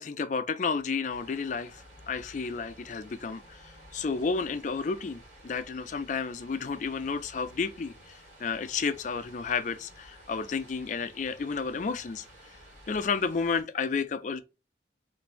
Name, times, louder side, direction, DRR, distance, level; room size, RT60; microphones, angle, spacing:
voice 1, 0.0-12.3 12.9-14.4, left 5 dB, 45° left, 0.4 m, -32 dB
sound 1, 1.1-13.6, equal, 45° right, 2.1 m, -53 dB
3.3 x 2.6 x 3.0 m
head